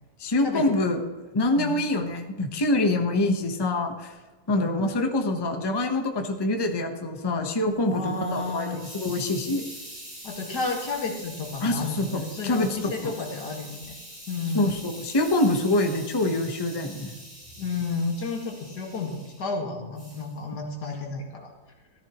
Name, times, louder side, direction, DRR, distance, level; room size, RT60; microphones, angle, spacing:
voice 1, 0.2-1.0 1.3-4.1 4.5-9.6 11.6-13.1 14.5-17.1, left 2 dB, 20° left, 4 dB, 0.8 m, -25 dB
Hiss, 7.7-19.4 20.0-20.3, equal, 25° right, 3.6 m, -44 dB
voice 2, 7.9-8.8 10.2-14.0 14.3-14.8 17.6-21.5, left 3 dB, 85° left, 0 dB, 2.5 m, -31 dB
14.0 x 13.5 x 3.0 m, 1.3 s
omnidirectional pair, 1.7 m